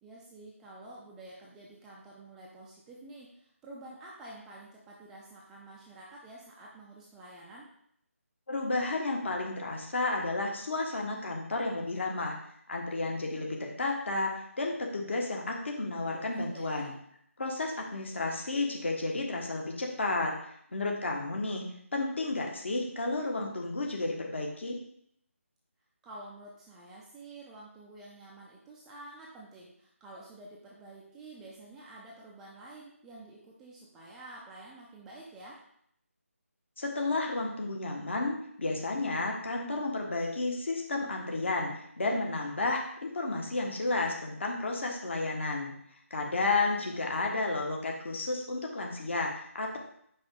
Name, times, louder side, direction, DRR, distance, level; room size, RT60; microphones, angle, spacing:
voice 1, 0.0-7.7 16.1-16.9 26.0-35.6 46.7-47.3, right 2 dB, 5° right, -5 dB, 0.3 m, -49 dB
voice 2, 8.5-12.3 12.7-16.9 17.4-20.4 20.7-21.7 21.9-24.8 36.8-45.7 46.1-49.8, left 2 dB, 55° left, 1 dB, 1.3 m, -32 dB
5.3 x 4.7 x 3.8 m, 0.70 s
figure-of-eight pair, 155°, 8 cm